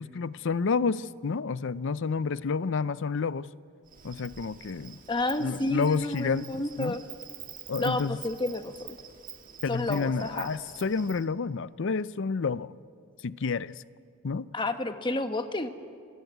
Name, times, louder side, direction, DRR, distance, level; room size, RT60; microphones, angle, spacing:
voice 1, 0.0-3.5 4.0-5.0 5.4-6.5 6.8-7.0 7.7-8.2 9.6-12.7 13.2-13.8 14.2-14.5, left 5 dB, 60° left, 0.5 m, -29 dB
Insect, 3.9-11.3, right 9 dB, 40° right, 1.7 m, -47 dB
voice 2, 5.1-7.0 7.8-9.0 9.7-10.5 14.5-15.7, left 2 dB, 20° left, 1.1 m, -30 dB
27.0 x 17.5 x 9.2 m
head